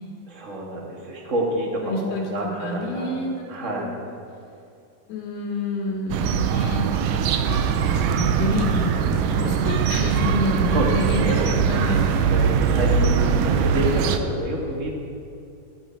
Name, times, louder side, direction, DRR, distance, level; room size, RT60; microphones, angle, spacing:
voice 1, 0.3-3.2 3.5-4.0 10.7-11.6 12.1-14.9, right 1 dB, 60° right, -2 dB, 0.7 m, -28 dB
voice 2, 1.9-4.1 5.1-6.8 7.7-12.3 12.7-13.8, left 2 dB, 85° left, -2 dB, 4.4 m, -29 dB
sound 1, 6.1-14.2, right 7 dB, 80° right, 1.9 m, -21 dB
16.5 x 12.5 x 4.5 m, 2.5 s
omnidirectional pair, 4.5 m